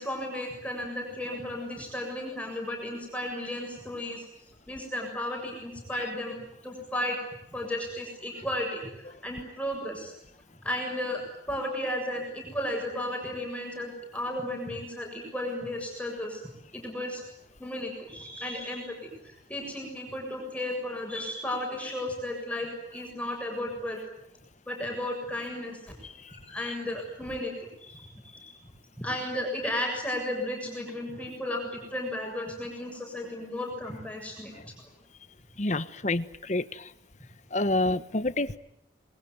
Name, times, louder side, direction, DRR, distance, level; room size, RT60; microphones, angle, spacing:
voice 1, 0.0-4.3 4.7-7.2 7.5-10.1 10.6-11.2 11.5-16.4 16.7-17.2 17.6-24.0 24.7-25.8 26.5-27.5 27.8-28.5 29.0-34.7, left 1 dB, 10° left, 1 dB, 7.3 m, -34 dB
voice 2, 35.6-36.2 36.5-36.6 37.5-38.6, left 2 dB, 40° left, 13 dB, 1.2 m, -27 dB
27.5 x 22.0 x 9.4 m, 0.78 s
head